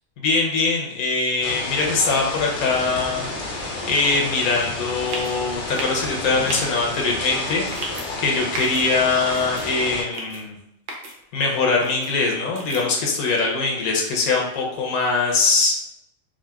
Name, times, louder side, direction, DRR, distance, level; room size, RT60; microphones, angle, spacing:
voice 1, 0.2-3.3 3.9-7.7 8.2-10.6 11.3-15.7, left 3 dB, 85° left, -1 dB, 1.1 m, -22 dB
sound 1, 1.4-10.0, left 2 dB, 70° left, 0.4 m, -31 dB
sound 2, 5.1-5.3 5.7-6.0 6.5-6.6 7.7-8.1 8.5-8.8 9.3-9.7 10.1-10.4 10.9-11.1 11.8-12.1 12.6-12.8, right 2 dB, 55° right, 0.5 m, -32 dB
3.7 x 2.4 x 2.3 m, 0.82 s
omnidirectional pair, 1.5 m